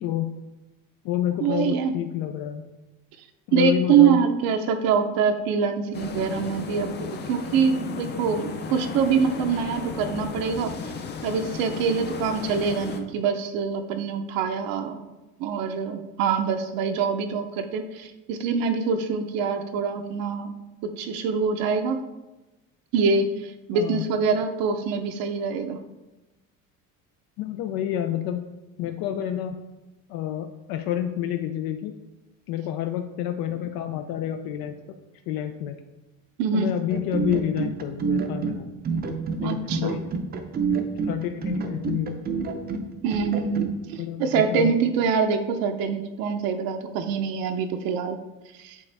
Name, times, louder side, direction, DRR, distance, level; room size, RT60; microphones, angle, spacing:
voice 1, 0.0-0.3 1.0-2.6 3.5-4.2 23.7-24.1 27.4-28.4 28.8-29.6 30.1-31.9 32.5-34.8 35.3-35.8 36.5-38.8 39.4-40.0 41.0-42.2 44.0-44.7, left 11 dB, 80° left, 6 dB, 0.5 m, -29 dB
voice 2, 1.4-2.0 3.5-10.7 11.2-15.0 15.4-20.6 20.8-22.0 22.9-25.8 36.4-36.7 39.4-40.0 43.0-48.2 48.5-48.8, right 6 dB, 75° right, 5 dB, 0.6 m, -24 dB
sound 1, 5.9-13.0, left 5 dB, 30° left, 0.5 m, -34 dB
sound 2, 36.9-43.7, right 4 dB, 25° right, 0.5 m, -28 dB
8.4 x 3.5 x 3.3 m, 1.1 s
cardioid pair, 150°, 35 cm